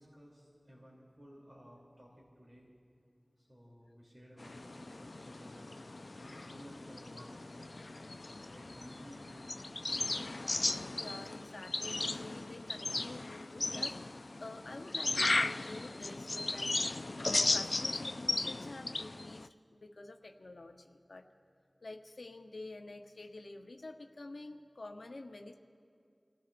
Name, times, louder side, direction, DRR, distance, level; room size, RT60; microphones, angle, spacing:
voice 1, 0.0-2.6 3.4-5.7 6.1-9.5, equal, 45° right, -4 dB, 3.1 m, -56 dB
sound 1, 4.4-19.5, left 2 dB, 65° left, 0.3 m, -36 dB
voice 2, 10.9-16.8 17.2-21.3 21.8-25.5, left 2 dB, 85° left, 3 dB, 0.9 m, -49 dB
30.0 x 15.5 x 2.6 m, 2.3 s
wide cardioid pair, 55°, 0 cm